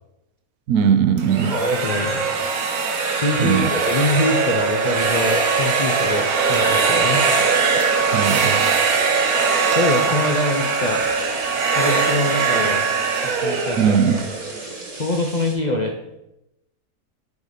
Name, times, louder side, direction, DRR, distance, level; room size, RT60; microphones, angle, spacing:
voice 1, 0.7-1.6 3.4-3.7 8.1-8.7 13.8-14.2, right 7 dB, 75° right, 11 dB, 1.0 m, -19 dB
sound 1, 1.2-15.0, right 5 dB, 90° right, 1.4 m, -21 dB
voice 2, 1.5-2.3 3.1-7.2 9.7-11.0 11.6-12.8 13.2-14.0 14.9-16.0, left 2 dB, 60° left, 2 dB, 0.4 m, -24 dB
sound 2, 6.9-15.5, right 2 dB, 50° right, 1.8 m, -38 dB
7.0 x 4.8 x 4.1 m, 0.87 s
omnidirectional pair, 1.5 m